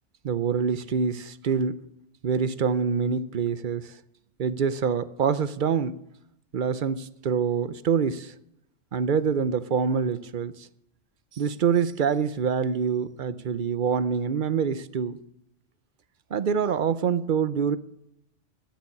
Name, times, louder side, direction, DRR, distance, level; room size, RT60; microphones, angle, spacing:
voice 1, 0.2-1.8 2.2-4.0 4.4-6.0 6.5-8.3 8.9-10.7 11.3-15.2 16.3-17.8, right 6 dB, 50° right, 15 dB, 0.7 m, -25 dB
13.0 x 9.3 x 7.1 m, 0.79 s
omnidirectional pair, 1.2 m